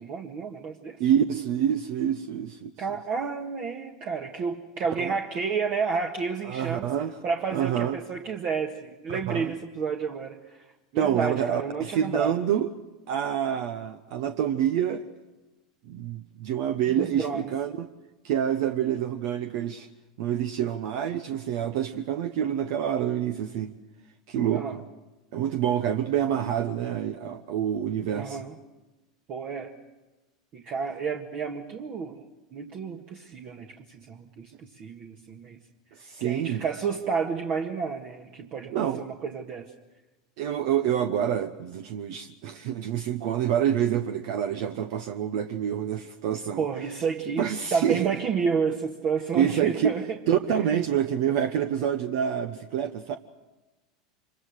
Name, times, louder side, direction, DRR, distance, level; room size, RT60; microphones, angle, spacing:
voice 1, 0.0-1.0 2.8-6.9 7.2-10.6 10.9-12.4 17.0-17.5 24.5-24.8 28.1-28.6 29.3-29.7 30.5-32.2 32.5-35.6 36.2-39.7 46.6-50.0 50.7-50.8, right 5 dB, 45° right, 2 dB, 1.8 m, -31 dB
voice 2, 1.0-2.7 5.0-5.2 6.4-7.2 7.5-8.0 9.1-9.5 11.0-12.7 13.1-15.0 15.9-17.9 18.2-19.9 20.2-23.7 24.3-24.8 25.3-28.4 36.0-36.6 38.7-39.0 40.4-46.6 47.4-48.1 49.3-49.9 50.3-53.2, right 9 dB, 65° right, 8 dB, 1.0 m, -27 dB
25.5 x 23.0 x 6.6 m, 1.1 s
hypercardioid pair, 90°, 3 cm